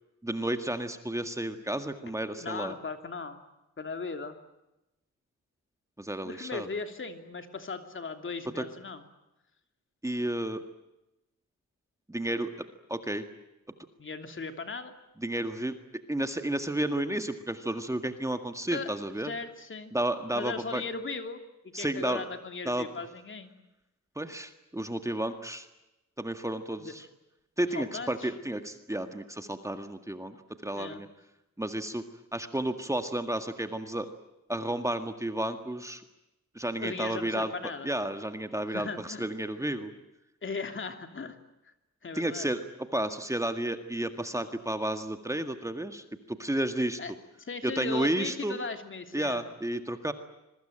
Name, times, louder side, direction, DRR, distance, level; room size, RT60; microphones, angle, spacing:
voice 1, 0.2-2.7 6.0-6.7 8.6-8.7 10.0-10.6 12.1-13.3 15.2-15.7 16.1-19.3 19.9-20.8 21.7-22.3 22.7-22.9 24.2-25.7 26.2-27.1 27.6-30.4 30.6-31.1 31.6-32.0 32.3-34.1 34.5-36.0 36.5-39.9 42.1-42.6 42.9-47.0 47.6-48.6 49.1-50.1, right 1 dB, 10° right, 7 dB, 1.9 m, -32 dB
voice 2, 2.4-3.4 3.8-4.4 6.2-9.0 14.0-14.9 18.7-18.9 19.2-19.9 20.3-21.4 21.8-23.5 26.8-26.9 27.7-28.3 30.8-31.0 36.8-37.9 38.7-39.3 39.6-39.7 40.4-41.4 42.0-42.5 47.0-47.1 47.4-49.4, left 4 dB, 40° left, 7 dB, 3.1 m, -37 dB
26.5 x 23.0 x 8.9 m, 0.94 s
wide cardioid pair, 115°, 30 cm